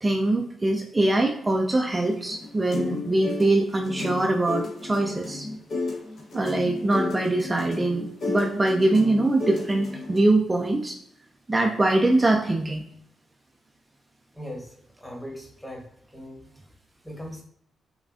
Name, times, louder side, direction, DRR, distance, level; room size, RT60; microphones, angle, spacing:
voice 1, 0.0-5.5 6.3-11.0 11.5-12.8, right 2 dB, 20° right, 2 dB, 0.5 m, -23 dB
sound 1, 2.0-10.2, left 3 dB, 60° left, 1.1 m, -33 dB
voice 2, 14.3-15.8 16.1-16.4 17.0-17.4, equal, 10° left, -2 dB, 1.2 m, -39 dB
5.3 x 2.3 x 2.5 m, 0.71 s
cardioid pair, 70°, 0 cm